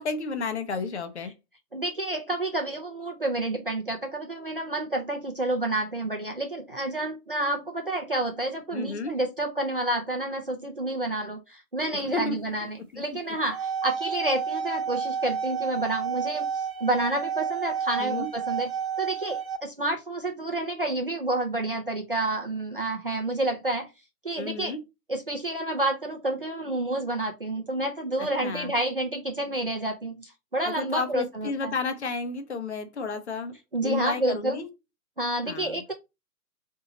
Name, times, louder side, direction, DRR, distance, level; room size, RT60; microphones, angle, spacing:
voice 1, 0.0-1.3 8.7-9.1 11.9-12.4 12.9-13.0 18.0-18.3 24.4-24.8 28.2-28.7 30.6-33.5 33.8-34.7 35.5-35.8, left 4 dB, 45° left, 0.7 m, -32 dB
voice 2, 1.7-18.7 19.0-23.9 24.2-24.8 25.1-31.8 33.7-34.6 35.2-35.9, right 2 dB, 40° right, 0.4 m, -29 dB
sound 1, 13.3-19.6, right 7 dB, 60° right, 1.2 m, -31 dB
3.9 x 2.7 x 3.9 m
hypercardioid pair, 170°, 48 cm